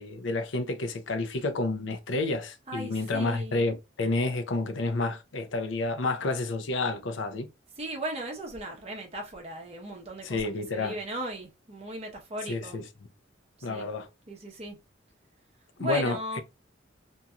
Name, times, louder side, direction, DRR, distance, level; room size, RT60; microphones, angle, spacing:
voice 1, 0.0-7.5 10.2-10.9 12.5-12.8 13.6-14.1 15.8-16.4, left 2 dB, 85° left, 0.6 m, -30 dB
voice 2, 2.7-3.6 7.8-10.4 10.7-12.8 13.7-13.9 14.3-14.8 15.8-16.4, right 1 dB, 35° right, 0.9 m, -37 dB
2.8 x 2.7 x 2.3 m
head